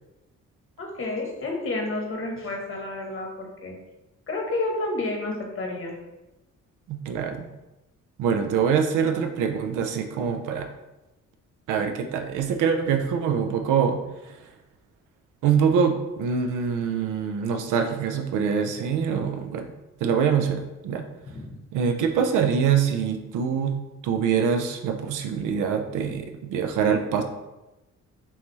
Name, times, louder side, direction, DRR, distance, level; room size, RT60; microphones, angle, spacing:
voice 1, 0.8-3.7 4.3-6.0 21.3-21.6, left 2 dB, 45° left, 1 dB, 1.2 m, -30 dB
voice 2, 6.9-7.5 8.2-10.7 11.7-14.5 15.4-19.7 20.0-21.0 21.7-23.8 24.0-27.2, right 7 dB, 90° right, 5 dB, 0.6 m, -24 dB
5.6 x 2.8 x 3.1 m, 1.0 s
cardioid pair, 90°, 30 cm